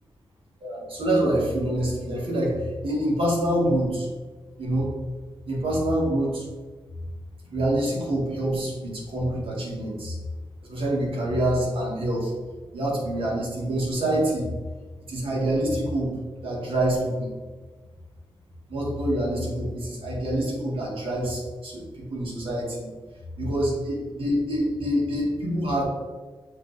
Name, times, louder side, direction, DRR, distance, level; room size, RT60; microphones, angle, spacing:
voice 1, 0.6-4.1 4.6-4.9 5.5-6.5 7.4-10.2 10.6-12.3 12.7-14.5 15.1-17.3 18.7-22.9 23.4-25.8, right 1 dB, 85° right, -3 dB, 1.9 m, -26 dB
7.2 x 3.6 x 4.1 m, 1.3 s
wide cardioid pair, 170°, 9 cm